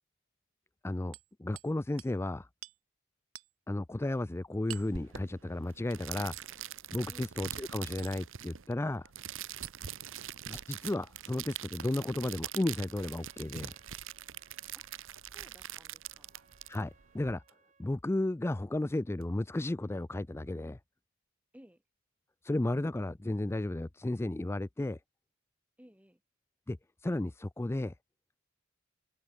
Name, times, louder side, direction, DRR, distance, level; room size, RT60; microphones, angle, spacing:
voice 1, 0.8-1.1 1.4-2.5 3.7-6.4 6.9-9.1 10.5-13.7 16.7-17.4 17.8-20.8 22.4-25.0 26.7-26.8 27.0-27.9, left 1 dB, 10° left, 0.4 m, -33 dB
Hammer, 1.1-1.7 2.0-2.2 2.6-2.8 3.3-3.5 4.7-5.0 6.3-6.5 8.0-8.2 9.6-9.8 11.8-11.9 13.4-14.2 14.9-15.1 16.3-16.5 17.4-17.6 19.2-19.3, right 10 dB, 80° right, 1.8 m, -48 dB
sound 1, 4.7-17.3, right 11 dB, 65° right, 0.9 m, -44 dB
Trumpet, 12.5-18.0, right 5 dB, 35° right, 5.8 m, -67 dB
voice 2, 15.3-16.3 21.5-21.8 25.8-26.2, equal, 5° right, 2.5 m, -58 dB
open air
head